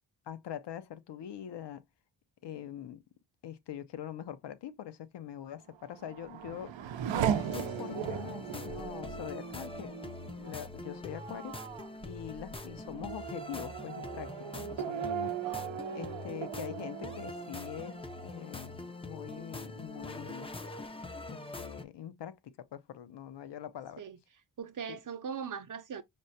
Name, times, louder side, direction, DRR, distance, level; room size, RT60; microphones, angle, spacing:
voice 1, 0.3-1.8 2.4-3.0 3.4-6.7 7.1-9.9 10.4-11.6 12.0-15.3 15.9-20.5 21.3-24.0 24.9-25.0, left 10 dB, 70° left, 0.6 m, -43 dB
Race car auto racing / Accelerating revving vroom, 5.7-18.9 19.3-20.0, right 9 dB, 90° right, 0.6 m, -38 dB
sound 1, 7.3-21.8, left 3 dB, 15° left, 0.4 m, -44 dB
voice 2, 15.4-16.2 24.0-24.2 24.6-26.0, right 6 dB, 45° right, 0.6 m, -41 dB
5.1 x 2.1 x 2.7 m
wide cardioid pair, 85°, 44 cm